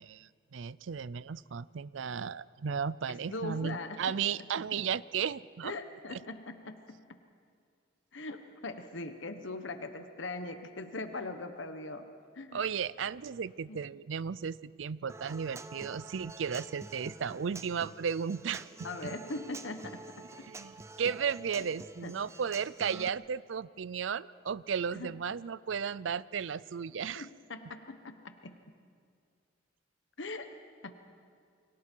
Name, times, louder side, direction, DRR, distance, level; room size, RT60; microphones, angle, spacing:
voice 1, 0.0-5.7 6.1-6.2 12.5-18.9 20.4-27.3, right 7 dB, 80° right, 19 dB, 0.5 m, -35 dB
voice 2, 3.1-4.0 5.6-7.2 8.1-12.1 12.3-12.6 13.7-13.8 18.8-20.5 22.0-22.2 22.9-23.1 25.0-25.1 27.1-28.6 30.2-30.6 30.8-30.9, left 2 dB, 75° left, 8 dB, 1.2 m, -41 dB
Human voice / Acoustic guitar, 15.1-23.1, right 2 dB, 15° right, 0.7 m, -48 dB
29.5 x 24.0 x 4.6 m, 2.2 s
head